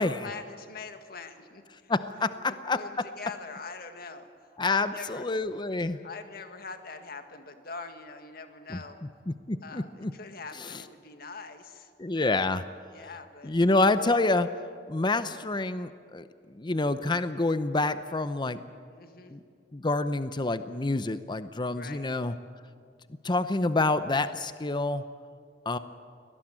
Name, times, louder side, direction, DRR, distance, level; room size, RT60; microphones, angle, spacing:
voice 1, 0.0-1.9 2.2-4.3 4.7-5.3 6.0-9.0 9.6-11.9 12.9-13.5 18.9-19.4 21.7-22.1, left 4 dB, 60° left, 7 dB, 1.9 m, -43 dB
voice 2, 1.9-3.0 4.6-6.0 8.7-8.8 9.3-10.1 10.6-10.8 12.0-12.6 13.4-14.5 14.9-16.3 16.5-18.6 19.3-19.4 19.7-22.3 23.2-25.0 25.7-25.8, left 2 dB, 25° left, 12 dB, 0.7 m, -27 dB
23.5 x 18.5 x 8.9 m, 2.2 s
head